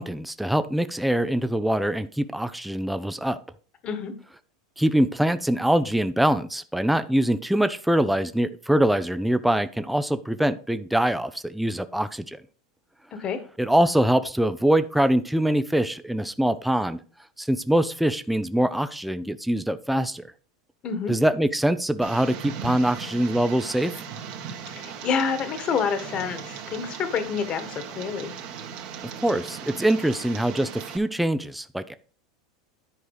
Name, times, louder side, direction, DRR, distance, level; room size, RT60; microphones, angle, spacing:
voice 1, 0.0-3.4 4.8-12.4 13.6-17.0 17.4-20.3 21.1-23.9 29.2-31.9, right 1 dB, ahead, 11 dB, 0.6 m, -23 dB
voice 2, 3.8-4.1 13.1-13.4 20.8-21.1 24.6-28.3, left 6 dB, 40° left, 10 dB, 1.7 m, -28 dB
Tick, 22.0-31.0, right 7 dB, 60° right, 1.9 m, -38 dB
10.5 x 4.8 x 4.8 m, 0.41 s
hypercardioid pair, 95°, 3 cm